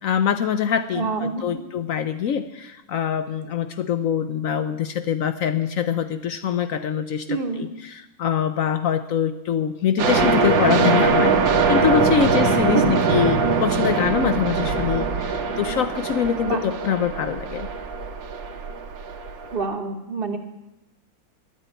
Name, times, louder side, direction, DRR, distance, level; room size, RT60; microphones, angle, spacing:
voice 1, 0.0-17.7, left 8 dB, 75° left, 10 dB, 0.7 m, -24 dB
voice 2, 0.9-1.4 7.3-7.7 12.7-13.0 16.4-16.6 19.5-20.4, right 4 dB, 40° right, 5 dB, 1.0 m, -27 dB
sound 1, 10.0-19.6, right 4 dB, 80° right, 1.9 m, -22 dB
11.0 x 9.0 x 9.2 m, 0.98 s
omnidirectional pair, 2.0 m